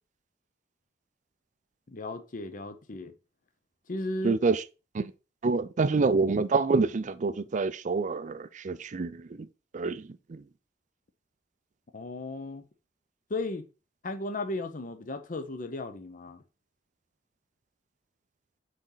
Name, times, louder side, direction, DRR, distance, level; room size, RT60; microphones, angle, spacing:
voice 1, 1.9-3.1 3.9-4.4 11.9-12.6 13.3-13.7 14.0-16.4, left 2 dB, 50° left, 0.7 m, -35 dB
voice 2, 4.2-4.6 4.9-5.1 5.4-9.5 9.7-10.4, right 4 dB, 45° right, 0.4 m, -27 dB
6.5 x 4.2 x 3.9 m
head